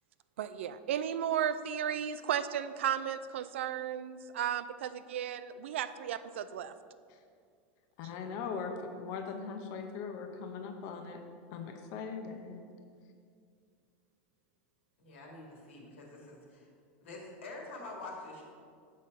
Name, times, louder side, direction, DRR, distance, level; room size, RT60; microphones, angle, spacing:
voice 1, 0.4-6.7, right 9 dB, 85° right, 13 dB, 0.4 m, -34 dB
voice 2, 8.0-11.2 11.5-12.6, left 5 dB, 55° left, 5 dB, 0.8 m, -40 dB
voice 3, 15.0-16.7 17.0-18.4, left 2 dB, 85° left, -1 dB, 1.9 m, -46 dB
6.3 x 5.7 x 5.3 m, 2.2 s
supercardioid pair, 115°, 6 cm